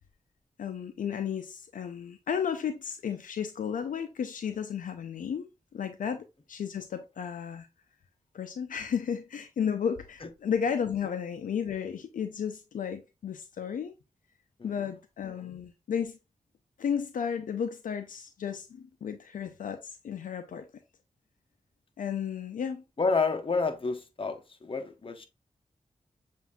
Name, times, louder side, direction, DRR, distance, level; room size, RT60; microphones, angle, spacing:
voice 1, 0.6-7.7 8.3-13.9 14.6-16.2 16.8-20.7 22.0-22.8, left 7 dB, 75° left, 0.4 m, -33 dB
voice 2, 14.6-14.9 23.0-25.3, left 4 dB, 40° left, 0.8 m, -30 dB
6.9 x 2.6 x 2.3 m
cardioid pair, 45°, 14 cm